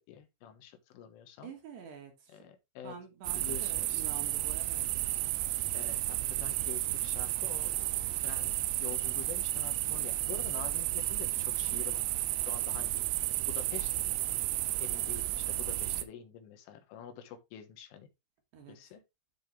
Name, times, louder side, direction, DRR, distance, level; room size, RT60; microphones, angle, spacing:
voice 1, 0.0-1.5 2.3-3.0 3.4-4.0 5.7-12.0 12.4-14.2 14.8-18.1 18.7-19.0, left 9 dB, 80° left, 3.6 m, -47 dB
voice 2, 1.4-2.5 2.8-4.9 18.5-18.8, right 6 dB, 65° right, 3.5 m, -48 dB
sound 1, 3.2-16.0, right 16 dB, 80° right, 2.8 m, -32 dB
12.0 x 4.2 x 3.3 m
omnidirectional pair, 5.8 m